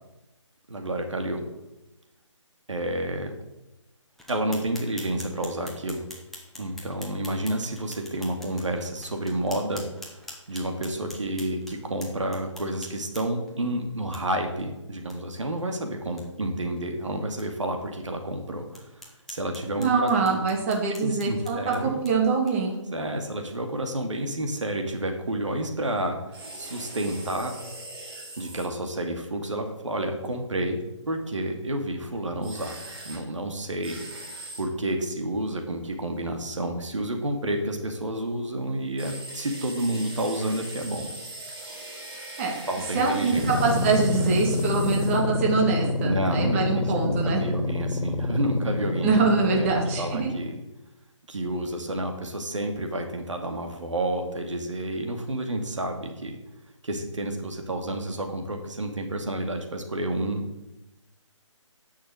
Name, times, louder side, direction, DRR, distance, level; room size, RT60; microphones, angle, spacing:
voice 1, 0.7-1.4 2.7-3.3 4.3-6.1 6.6-10.2 10.5-18.8 19.3-20.4 21.0-22.0 22.9-27.5 28.4-30.8 31.1-32.8 33.0-34.0 34.6-41.1 42.7-43.5 46.0-49.1 49.5-50.6 51.3-56.4 56.8-60.7, right 1 dB, 70° right, 4 dB, 2.4 m, -30 dB
sound 1, 4.2-13.5 14.1-14.2 14.6-14.7 15.1-15.2 15.5-15.6 16.0-16.3 16.8-16.9 17.4-17.5 18.0-18.1 18.7-22.8, left 1 dB, ahead, 1.2 m, -46 dB
voice 2, 19.8-22.8 42.4-42.6 42.9-47.4 49.0-50.4, right 4 dB, 25° right, 0 dB, 2.2 m, -24 dB
sound 2, 26.3-28.7 32.4-33.2 33.8-34.7 39.0-45.3, right 1 dB, 45° right, 3.9 m, -40 dB
sound 3, 43.2-50.6, left 2 dB, 90° left, 1.7 m, -28 dB
10.5 x 6.4 x 7.7 m, 0.96 s
figure-of-eight pair, 150°, 16 cm